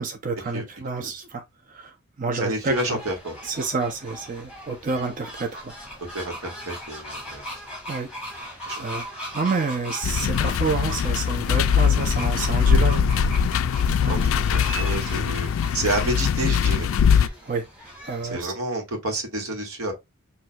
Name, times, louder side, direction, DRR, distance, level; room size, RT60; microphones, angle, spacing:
voice 1, 0.0-3.0 3.4-5.8 7.9-13.1 14.0-14.2 17.1-18.5, right 4 dB, 40° right, 0.5 m, -29 dB
voice 2, 2.3-3.3 6.1-7.4 8.7-8.8 13.2-13.3 14.1-15.5 15.7-16.9 18.3-19.9, right 1 dB, 80° right, 1.5 m, -29 dB
sound 1, 2.7-18.4, equal, 5° right, 2.2 m, -39 dB
sound 2, 10.0-17.3, left 7 dB, 65° left, 0.3 m, -21 dB
6.0 x 2.7 x 2.2 m
head